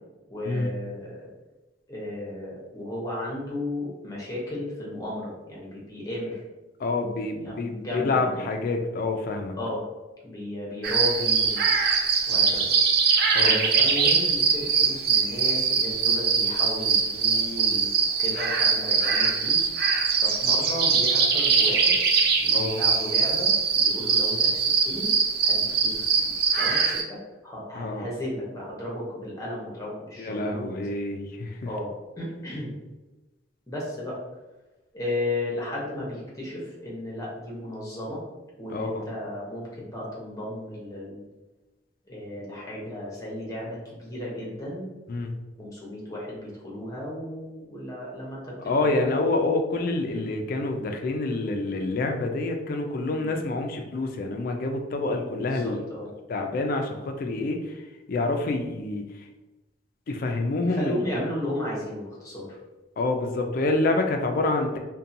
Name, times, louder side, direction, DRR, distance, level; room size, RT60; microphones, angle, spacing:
voice 1, 0.3-1.3 1.9-6.4 7.4-8.4 9.5-9.8 10.2-11.7 12.3-12.7 13.4-17.9 18.2-22.0 22.4-25.1 25.4-30.7 31.6-32.7 33.7-34.2 34.9-38.2 38.6-41.2 42.1-44.9 45.6-49.2 50.1-50.3 53.2-53.3 55.4-56.1 60.5-62.6, left 1 dB, 20° left, -5 dB, 0.7 m, -34 dB
voice 2, 6.8-9.6 13.3-13.6 22.5-22.8 27.8-28.1 30.2-31.6 38.7-39.0 45.1-45.3 48.7-55.8 56.3-57.8 58.1-59.1 60.1-61.2 63.0-64.8, left 2 dB, 50° left, 4 dB, 0.3 m, -27 dB
sound 1, 10.8-27.0, right 5 dB, 55° right, 0.3 m, -22 dB
2.7 x 2.2 x 2.5 m, 1.1 s
head